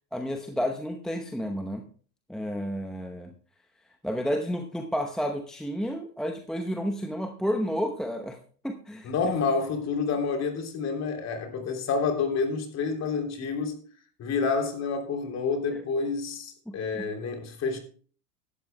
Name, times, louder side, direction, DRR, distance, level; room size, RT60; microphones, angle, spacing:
voice 1, 0.1-1.8 2.3-3.3 4.0-8.4 8.6-9.3 15.7-15.8 16.7-17.1, equal, ahead, 0.9 m, -31 dB
voice 2, 9.0-13.7 14.2-17.8, left 4 dB, 35° left, 3.2 m, -28 dB
17.0 x 12.0 x 2.2 m
hypercardioid pair, 100°, 47 cm